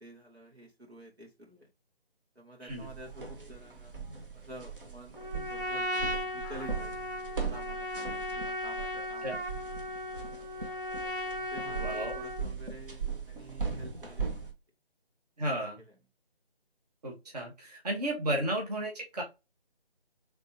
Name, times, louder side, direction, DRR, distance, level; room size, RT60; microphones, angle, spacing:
voice 1, 0.0-1.7 2.4-4.0 4.3-5.2 5.5-5.9 6.3-8.1 8.4-9.3 9.6-9.9 11.2-14.5 15.8-15.9, equal, 85° right, 0 dB, 2.0 m, -50 dB
sound 1, 2.7-14.5, right 5 dB, 60° right, 1.3 m, -39 dB
Trumpet, 5.2-12.5, left 1 dB, 20° left, 0.6 m, -36 dB
voice 2, 11.7-12.1 15.4-15.8 17.0-19.2, right 1 dB, 40° right, -1 dB, 1.1 m, -33 dB
3.8 x 3.5 x 2.8 m, 0.25 s
figure-of-eight pair, 155°, 31 cm